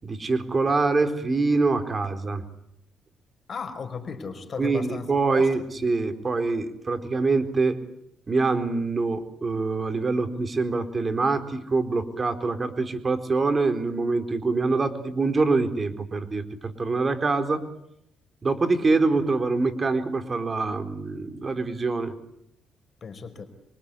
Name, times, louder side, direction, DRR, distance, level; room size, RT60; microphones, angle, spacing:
voice 1, 0.0-2.4 4.6-7.8 8.3-17.6 18.4-22.1, right 3 dB, 30° right, 8 dB, 4.2 m, -25 dB
voice 2, 3.5-5.5 23.0-23.5, left 5 dB, 45° left, 7 dB, 5.0 m, -35 dB
27.5 x 25.0 x 8.5 m, 0.77 s
cardioid pair, 90°, 0 cm